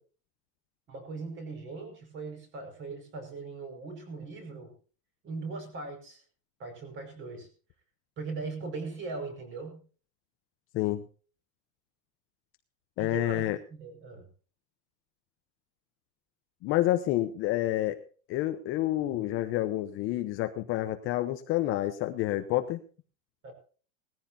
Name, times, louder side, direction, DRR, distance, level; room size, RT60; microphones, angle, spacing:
voice 1, 0.9-4.7 5.2-6.2 6.6-7.5 8.2-9.8 13.0-14.3 23.4-23.5, right 4 dB, 30° right, 6 dB, 5.4 m, -39 dB
voice 2, 13.0-13.6 16.6-18.0 18.3-22.8, left 15 dB, 30° left, 7 dB, 0.9 m, -28 dB
19.5 x 14.5 x 2.7 m, 0.39 s
supercardioid pair, 165°, 41 cm